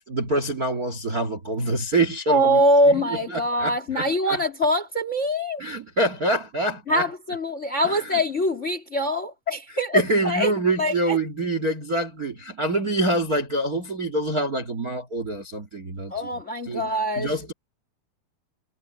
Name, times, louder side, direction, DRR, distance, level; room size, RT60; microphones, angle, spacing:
voice 1, 0.0-2.6 2.9-3.0 3.3-4.4 5.6-7.1 7.8-8.2 9.9-16.1 16.6-17.5, right 2 dB, 35° right, 1.7 m, -26 dB
voice 2, 2.3-5.6 6.9-10.5 10.8-11.2 16.1-17.3, equal, 25° left, 1.9 m, -23 dB
omnidirectional pair, 4.3 m